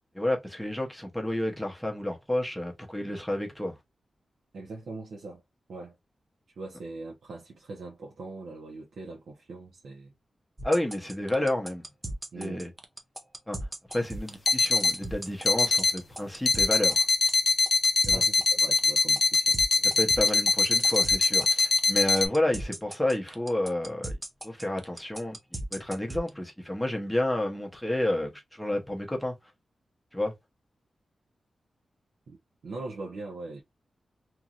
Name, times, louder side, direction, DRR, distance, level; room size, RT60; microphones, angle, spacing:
voice 1, 0.1-3.8 10.6-11.8 12.3-12.7 13.5-13.6 13.9-17.0 18.0-18.2 19.8-24.2 24.4-25.4 25.7-29.3 30.1-30.3, left 1 dB, 5° left, 0.9 m, -30 dB
voice 2, 4.5-5.4 5.7-5.9 6.6-10.1 11.4-11.5 12.3-12.7 18.1-19.6 32.3-32.4 32.6-33.6, right 3 dB, 80° right, 0.9 m, -41 dB
sound 1, 10.6-26.3, right 1 dB, 15° right, 0.6 m, -37 dB
sound 2, 13.9-14.0 14.5-15.0 15.4-16.0 16.5-22.3, left 4 dB, 45° left, 0.5 m, -23 dB
2.9 x 2.7 x 2.4 m
wide cardioid pair, 160°, 0 cm